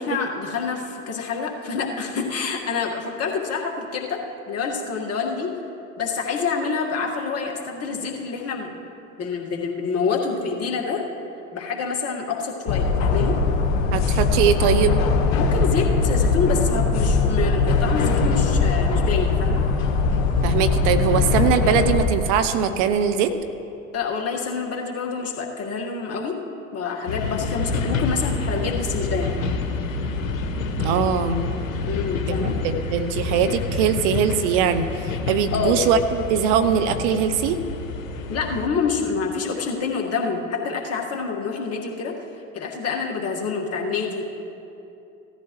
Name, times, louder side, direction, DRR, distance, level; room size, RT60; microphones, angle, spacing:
voice 1, 0.0-5.5 6.0-8.8 9.2-11.0 11.5-13.4 15.4-19.7 23.9-26.4 26.7-29.3 31.9-32.6 35.5-35.9 38.3-42.2 42.5-44.3, left 5 dB, 35° left, 0 dB, 1.9 m, -27 dB
sound 1, 12.7-22.1, left 4 dB, 60° left, 1.4 m, -20 dB
voice 2, 13.9-15.0 20.4-23.3 30.8-31.4 32.3-37.6, right 7 dB, 60° right, 10 dB, 0.9 m, -21 dB
sound 2, 27.1-38.7, left 3 dB, 80° left, 1.1 m, -28 dB
17.0 x 13.5 x 3.2 m, 2.8 s
hypercardioid pair, 75°, 40 cm